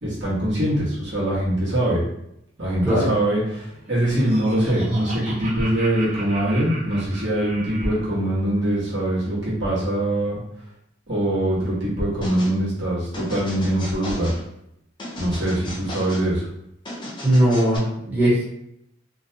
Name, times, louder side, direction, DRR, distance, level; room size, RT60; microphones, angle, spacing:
voice 1, 0.0-2.0 2.6-10.4 11.1-14.4 15.2-16.5, right 1 dB, 70° right, -7 dB, 1.1 m, -23 dB
voice 2, 2.8-3.1 17.2-18.4, right 1 dB, 10° right, -9 dB, 0.7 m, -19 dB
Laughter, 3.7-8.1, right 2 dB, 35° right, 1.0 m, -37 dB
sound 1, 12.2-12.6 13.1-14.4 15.0-16.3 16.8-17.8, left 1 dB, 25° left, 0.5 m, -35 dB
2.5 x 2.1 x 2.6 m, 0.78 s
head